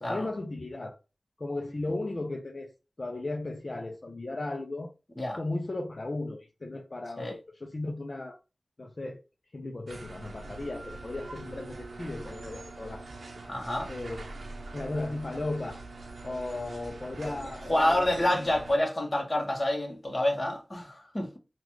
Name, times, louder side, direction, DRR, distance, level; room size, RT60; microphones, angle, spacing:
voice 1, 0.1-1.0 1.4-2.7 3.0-4.9 5.3-8.4 8.8-9.2 9.5-13.1 13.9-14.2 14.7-15.8 16.2-18.1, left 2 dB, 50° left, 0.6 m, -35 dB
sound 1, 9.9-18.8, right 2 dB, 90° right, 0.7 m, -43 dB
voice 2, 13.4-13.9 17.6-21.4, left 1 dB, 30° left, 1.2 m, -28 dB
3.9 x 2.3 x 3.1 m
wide cardioid pair, 55°, 0 cm